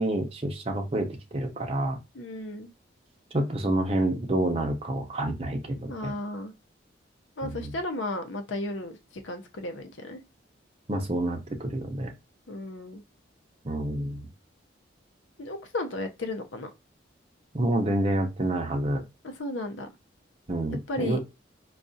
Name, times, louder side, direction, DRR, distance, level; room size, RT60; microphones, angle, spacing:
voice 1, 0.0-2.0 3.3-6.1 7.4-7.7 10.9-12.1 13.6-14.3 17.5-19.0 20.5-21.2, right 1 dB, 30° right, 0.6 m, -28 dB
voice 2, 2.1-2.7 5.9-6.5 7.4-9.0 9.2-10.2 12.5-13.0 15.4-16.7 19.2-19.9 20.9-21.2, left 1 dB, 85° left, 0.7 m, -34 dB
4.7 x 2.4 x 2.6 m
head